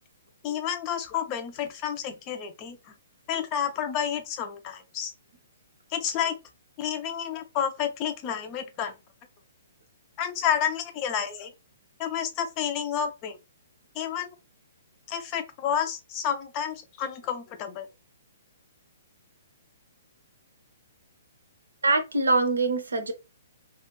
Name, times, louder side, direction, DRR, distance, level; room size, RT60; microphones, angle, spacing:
voice 1, 0.4-2.8 3.3-5.1 5.9-6.4 6.8-8.9 10.2-11.5 12.0-13.4 14.0-14.4 15.1-17.9, left 8 dB, 25° left, 0.4 m, -30 dB
voice 2, 21.8-23.1, right 2 dB, 70° right, 0.6 m, -23 dB
2.4 x 2.2 x 2.9 m
figure-of-eight pair, 120°, 0 cm